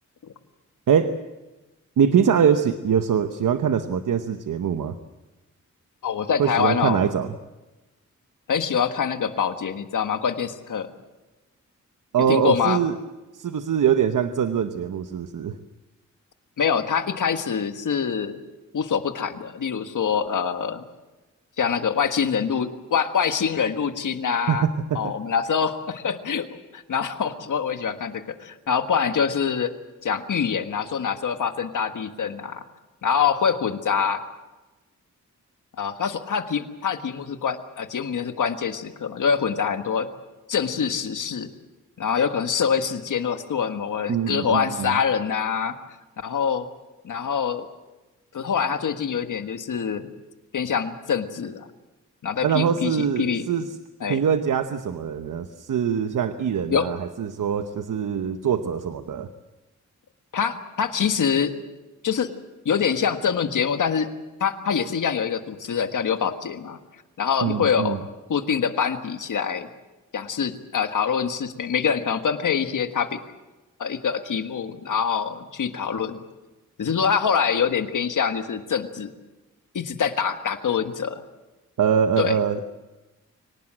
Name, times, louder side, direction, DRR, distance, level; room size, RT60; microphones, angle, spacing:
voice 1, 0.9-1.2 2.0-4.9 6.4-7.3 12.1-13.0 13.3-15.6 24.5-25.1 44.1-45.0 52.4-53.8 54.1-59.3 67.4-68.0 81.8-82.6, right 7 dB, 85° right, 9 dB, 1.0 m, -23 dB
voice 2, 6.0-7.0 8.5-10.9 12.3-12.8 16.6-18.4 18.7-20.8 21.6-24.7 24.9-26.5 26.7-29.7 30.0-32.6 33.0-34.2 35.8-40.1 40.5-41.5 42.0-45.7 46.2-46.7 47.0-47.7 48.3-50.1 50.5-51.7 52.2-53.4 54.0-54.2 56.7-56.9 60.3-61.5 62.0-62.3 62.6-64.1 64.4-66.8 67.2-68.0 68.3-69.7 70.1-73.2 73.8-76.2 76.8-79.1 79.7-81.2 82.2-82.3, left 7 dB, 80° left, 8 dB, 1.6 m, -25 dB
24.0 x 19.0 x 7.5 m, 1.1 s
wide cardioid pair, 135°, 31 cm